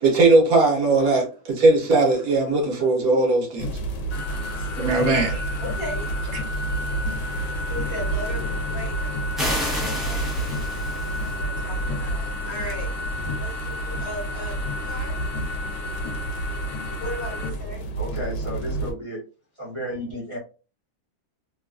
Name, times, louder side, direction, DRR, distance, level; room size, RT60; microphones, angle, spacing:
voice 1, 0.0-3.8 4.7-5.5, right 3 dB, 70° right, 1.3 m, -19 dB
sound 1, 3.6-18.9, right 1 dB, 90° left, 1.1 m, -30 dB
sound 2, 4.1-17.5, left 2 dB, 70° left, 0.6 m, -34 dB
voice 2, 5.6-6.0 7.7-8.4 8.7-9.7 10.1-10.3 11.2-12.9 13.4-14.5 14.8-15.2 17.0-17.8, equal, 45° left, 1.1 m, -36 dB
sound 3, 9.4-11.4, left 1 dB, ahead, 0.3 m, -30 dB
voice 3, 18.0-19.2 19.6-20.4, equal, 25° right, 0.7 m, -32 dB
3.0 x 2.3 x 2.3 m
omnidirectional pair, 1.6 m